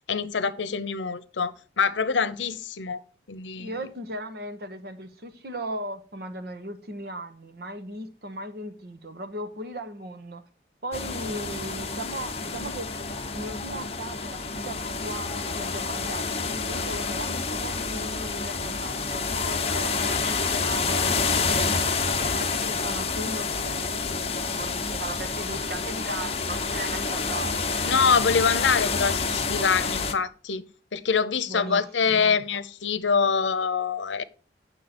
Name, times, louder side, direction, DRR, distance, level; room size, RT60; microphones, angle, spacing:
voice 1, 0.1-3.0 3.3-3.7 20.1-20.4 27.8-30.6 30.9-34.2, left 5 dB, 90° left, 0.7 m, -25 dB
voice 2, 3.6-10.4 10.8-12.9 13.3-21.9 22.3-27.7 31.5-32.4, right 1 dB, 60° right, 1.0 m, -37 dB
sound 1, 10.9-30.1, left 4 dB, 35° left, 0.9 m, -28 dB
9.0 x 6.5 x 4.3 m
head